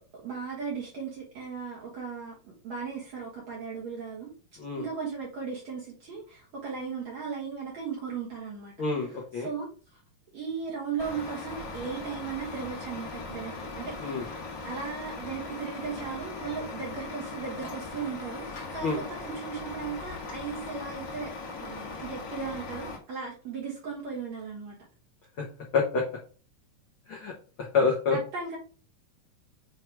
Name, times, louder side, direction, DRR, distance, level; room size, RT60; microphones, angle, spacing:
voice 1, 0.2-4.3 4.8-8.7 9.4-10.0 10.3-18.4 18.7-21.3 21.6-24.7 28.1-28.6, right 5 dB, 55° right, -4 dB, 2.5 m, -37 dB
voice 2, 8.8-9.5 14.0-14.3 18.8-19.0 25.4-25.5 25.7-26.0 27.1-27.3 27.6-28.2, left 4 dB, 85° left, 0 dB, 1.1 m, -27 dB
Truck, 11.0-23.0, left 3 dB, 40° left, 1.8 m, -39 dB
7.6 x 3.3 x 4.7 m, 0.38 s
omnidirectional pair, 4.0 m